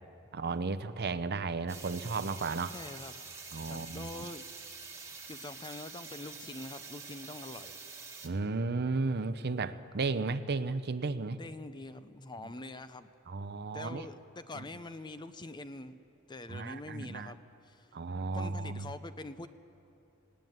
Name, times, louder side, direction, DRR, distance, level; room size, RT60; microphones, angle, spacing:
voice 1, 0.3-2.7 3.5-4.3 8.2-11.4 13.3-14.1 14.6-14.7 16.5-17.3 17.9-18.9, right 3 dB, 50° right, 12 dB, 0.7 m, -34 dB
sound 1, 1.7-8.3, right 4 dB, 15° right, 1.6 m, -46 dB
voice 2, 2.7-3.1 3.7-4.5 5.3-7.8 11.4-13.1 13.7-16.0 16.3-17.9 18.3-19.5, left 2 dB, 20° left, 12 dB, 0.6 m, -44 dB
18.5 x 18.5 x 9.4 m, 3.0 s
head